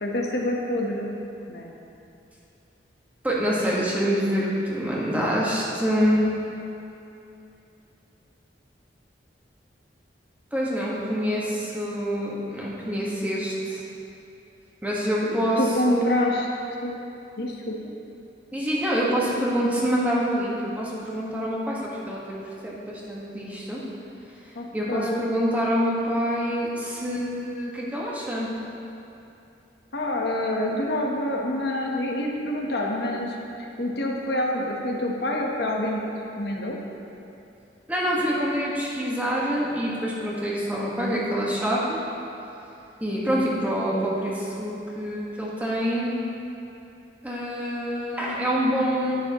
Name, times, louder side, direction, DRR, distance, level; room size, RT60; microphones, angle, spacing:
voice 1, 0.0-1.1 1.5-1.7 15.2-16.5 16.8-17.0 17.4-17.8 24.5-25.3 29.9-36.0 36.4-36.8, left 1 dB, 65° left, -1 dB, 1.1 m, -27 dB
voice 2, 3.2-6.2 10.5-13.8 14.8-15.6 15.8-16.2 18.5-23.8 24.7-28.5 37.9-42.0 43.0-46.2 47.2-49.2, equal, 10° right, -6 dB, 1.5 m, -26 dB
10.5 x 9.9 x 3.0 m, 2.8 s
head